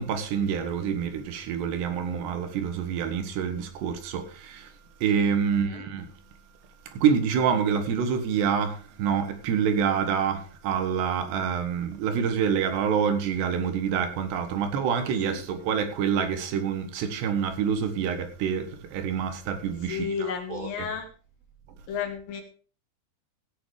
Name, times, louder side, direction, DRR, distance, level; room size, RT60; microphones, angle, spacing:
voice 1, 0.0-4.7 5.0-6.1 6.9-20.9, right 7 dB, 75° right, 3.5 m, -27 dB
voice 2, 5.5-5.9 15.3-15.4 19.8-21.1 21.9-22.4, left 7 dB, 65° left, 2.7 m, -32 dB
16.5 x 7.1 x 4.9 m
omnidirectional pair, 5.1 m